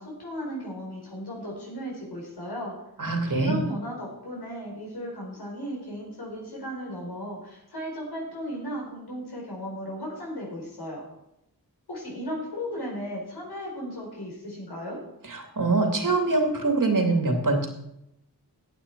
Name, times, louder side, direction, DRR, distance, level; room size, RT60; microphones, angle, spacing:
voice 1, 0.0-2.7 3.4-11.0 11.9-15.0, equal, 80° left, -3 dB, 4.6 m, -36 dB
voice 2, 3.0-3.6 15.3-17.7, right 3 dB, 55° right, 3 dB, 2.3 m, -24 dB
15.0 x 9.0 x 4.7 m, 0.82 s
wide cardioid pair, 85°, 39 cm